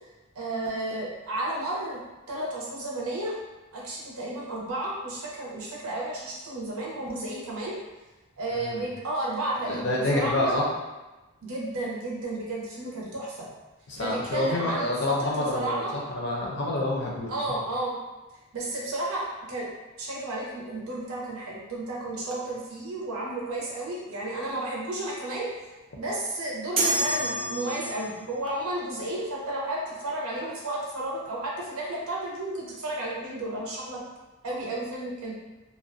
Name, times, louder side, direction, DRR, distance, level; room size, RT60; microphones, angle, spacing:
voice 1, 0.4-2.0 2.3-3.4 3.7-7.7 8.4-10.7 11.4-13.5 14.0-15.9 17.3-18.0 18.5-19.7 20.0-34.0 34.4-35.3, right 1 dB, 80° right, -3 dB, 0.6 m, -32 dB
voice 2, 9.7-10.6 13.9-17.3, left 1 dB, 50° left, -3 dB, 0.5 m, -27 dB
sound 1, 26.8-28.3, right 2 dB, 25° right, 0.4 m, -28 dB
2.3 x 2.1 x 2.5 m, 1.1 s
head